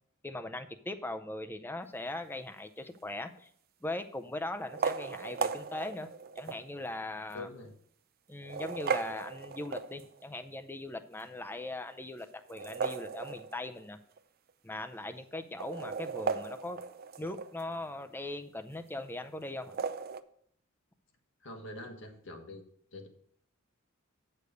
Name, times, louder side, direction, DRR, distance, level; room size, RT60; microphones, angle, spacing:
voice 1, 0.2-3.5 3.8-6.1 6.4-7.5 8.3-14.0 14.6-16.8 17.2-19.8, left 2 dB, 10° left, 8 dB, 0.5 m, -40 dB
sound 1, 2.9-3.4 4.6-6.7 7.3-7.4 8.3-10.3 12.4-13.9 14.2-14.3 14.5-14.6 15.4-17.7 19.5-20.2, right 5 dB, 45° right, 0.4 m, -36 dB
voice 2, 7.3-7.7 21.4-22.6 22.9-23.1, left 2 dB, 60° left, 4 dB, 1.5 m, -44 dB
8.3 x 6.6 x 5.1 m, 0.63 s
head